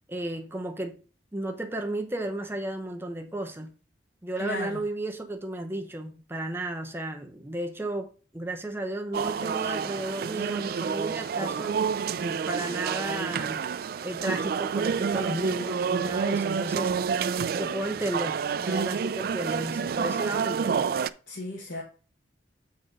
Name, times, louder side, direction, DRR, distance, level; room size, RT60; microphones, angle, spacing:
voice 1, 0.1-1.0 1.3-3.7 4.2-11.8 12.2-20.9, right 1 dB, 10° right, 0.8 m, -34 dB
voice 2, 4.4-4.8 21.3-21.8, left 1 dB, 80° left, 1.4 m, -35 dB
sound 1, 9.1-21.1, right 6 dB, 50° right, 0.3 m, -29 dB
7.6 x 4.1 x 5.1 m
head